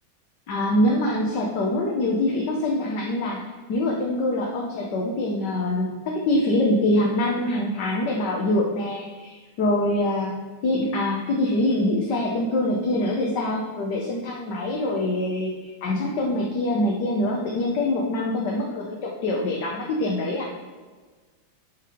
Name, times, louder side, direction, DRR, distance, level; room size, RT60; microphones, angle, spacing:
voice 1, 0.5-3.4 3.7-20.5, left 1 dB, 55° left, -2 dB, 1.6 m, -24 dB
10.0 x 4.9 x 5.1 m, 1.4 s
omnidirectional pair, 2.3 m